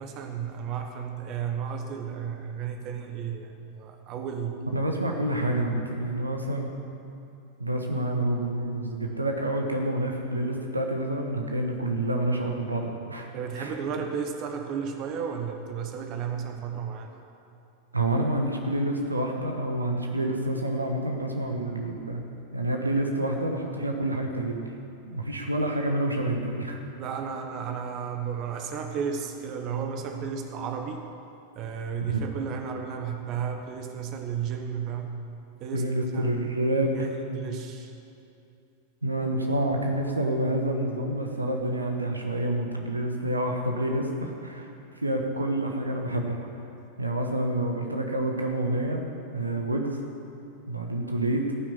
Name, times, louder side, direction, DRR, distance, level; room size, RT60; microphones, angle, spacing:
voice 1, 0.0-4.6 5.1-5.2 13.3-17.2 27.0-31.0 31.5-35.1 35.6-36.7 37.0-37.9, right 7 dB, 40° right, 4 dB, 1.2 m, -33 dB
voice 2, 4.7-6.7 7.6-13.3 13.6-13.7 17.9-22.2 22.5-24.7 25.0-26.8 32.1-32.2 35.7-37.1 39.0-44.7 45.0-46.5 47.0-49.0 49.3-50.0 50.7-51.5, right 1 dB, 80° right, 2 dB, 1.2 m, -28 dB
14.5 x 6.2 x 9.7 m, 2.7 s
figure-of-eight pair, 90°, 0 cm